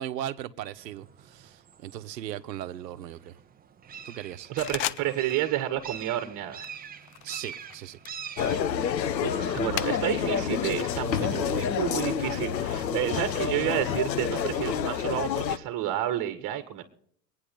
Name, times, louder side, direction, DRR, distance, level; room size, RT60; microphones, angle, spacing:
voice 1, 0.0-3.3 4.0-4.5 7.2-8.0 11.1-11.6, right 11 dB, 80° right, 1.2 m, -38 dB
sound 1, 0.8-14.6, right 7 dB, 20° right, 1.0 m, -47 dB
voice 2, 4.5-6.7 9.2-16.8, right 12 dB, 40° right, 1.9 m, -30 dB
sound 2, 4.6-5.5 5.8-6.1 6.6-10.4 10.7-12.2, left 13 dB, 25° left, 0.5 m, -38 dB
sound 3, 8.4-15.6, left 8 dB, 85° left, 1.1 m, -28 dB
24.5 x 9.7 x 3.9 m
hypercardioid pair, 105°, 49 cm